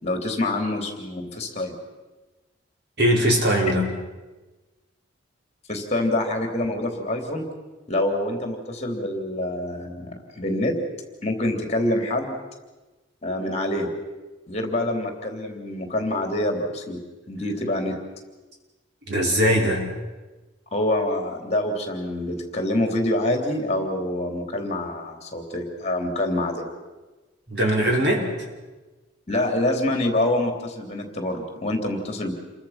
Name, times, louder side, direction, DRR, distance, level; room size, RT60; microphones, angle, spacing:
voice 1, 0.0-1.8 5.7-7.4 7.9-10.8 11.2-12.4 13.2-13.9 14.5-18.0 20.7-26.7 29.3-32.3, left 1 dB, 35° left, 4 dB, 3.3 m, -26 dB
voice 2, 3.0-3.9 19.1-19.9 27.5-28.3, equal, 55° right, 0 dB, 5.2 m, -20 dB
28.5 x 23.5 x 5.9 m, 1.2 s
head